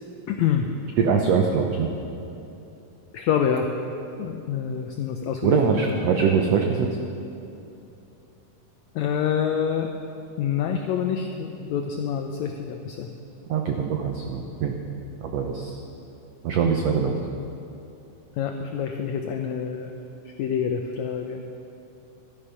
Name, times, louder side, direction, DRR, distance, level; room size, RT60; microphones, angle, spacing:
voice 1, 0.3-0.7 3.1-3.7 4.2-6.0 8.9-9.9 10.4-13.1 18.4-19.9 20.4-21.4, left 8 dB, 90° left, 4 dB, 1.6 m, -26 dB
voice 2, 1.0-1.9 5.4-6.9 13.5-14.7 15.2-15.8 16.4-17.1, right 6 dB, 90° right, 2 dB, 1.4 m, -23 dB
13.0 x 12.5 x 5.6 m, 2.8 s
omnidirectional pair, 4.0 m